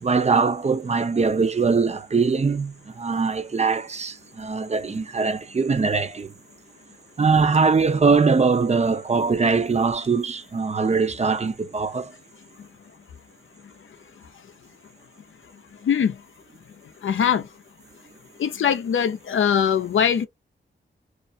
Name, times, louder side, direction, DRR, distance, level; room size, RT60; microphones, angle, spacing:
voice 1, 0.0-6.3 7.2-12.1, right 4 dB, 30° right, 0.5 m, -22 dB
voice 2, 17.0-17.4 18.4-20.3, left 8 dB, 70° left, 0.5 m, -21 dB
2.4 x 2.0 x 2.5 m
cardioid pair, 50°, 21 cm